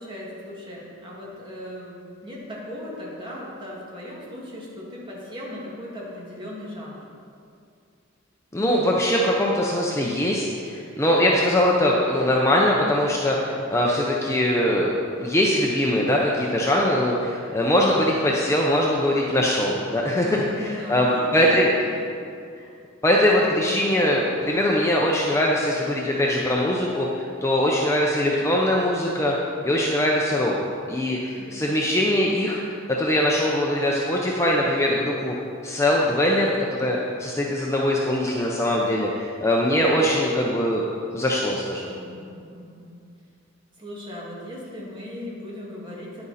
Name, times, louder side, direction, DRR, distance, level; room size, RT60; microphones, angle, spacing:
voice 1, 0.0-7.0 20.2-22.2 31.3-31.7 41.9-43.0 43.8-46.2, left 1 dB, 25° right, -5 dB, 2.2 m, -37 dB
voice 2, 8.5-20.3 20.6-21.7 23.0-29.3 29.6-30.6 30.9-32.6 33.0-35.3 35.6-40.8 41.1-41.9, left 1 dB, 15° left, -3 dB, 0.7 m, -22 dB
10.0 x 8.8 x 4.2 m, 2.4 s
head